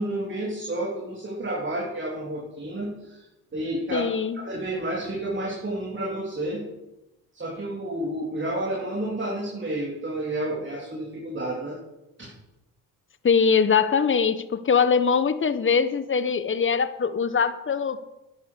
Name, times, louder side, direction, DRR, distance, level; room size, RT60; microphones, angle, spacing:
voice 1, 0.0-3.3 3.5-4.1 4.4-6.7 7.3-11.8 12.2-12.3, right 1 dB, 30° right, -3 dB, 3.7 m, -30 dB
voice 2, 3.9-4.4 13.2-18.2, left 6 dB, 30° left, 13 dB, 1.1 m, -22 dB
10.5 x 9.9 x 6.6 m, 0.96 s
supercardioid pair, 80°, 40 cm